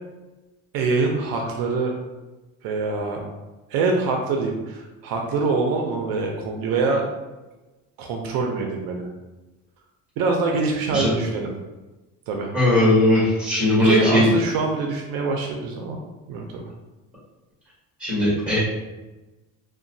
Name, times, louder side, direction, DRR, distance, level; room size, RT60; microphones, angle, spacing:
voice 1, 0.7-1.9 2.6-3.2 3.7-7.0 8.0-9.1 10.2-11.5 12.3-12.5 13.8-16.0 16.3-16.7, right 4 dB, 70° right, 1 dB, 0.5 m, -24 dB
voice 2, 12.5-14.3 18.0-18.6, left 1 dB, 5° right, -8 dB, 1.2 m, -19 dB
2.9 x 2.2 x 2.6 m, 1.1 s
cardioid pair, 155°, 36 cm